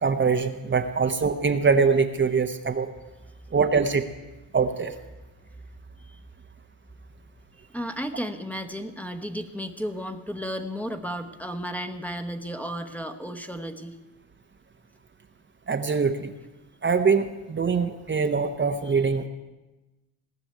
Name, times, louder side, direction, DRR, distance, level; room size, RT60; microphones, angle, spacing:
voice 1, 0.0-2.9 3.5-4.1 4.5-4.9 15.7-16.3 16.8-19.3, right 5 dB, 30° right, 6 dB, 0.9 m, -23 dB
voice 2, 7.6-14.0, equal, 5° left, 5 dB, 1.1 m, -34 dB
17.5 x 6.1 x 9.2 m, 1.1 s
supercardioid pair, 75°, 38 cm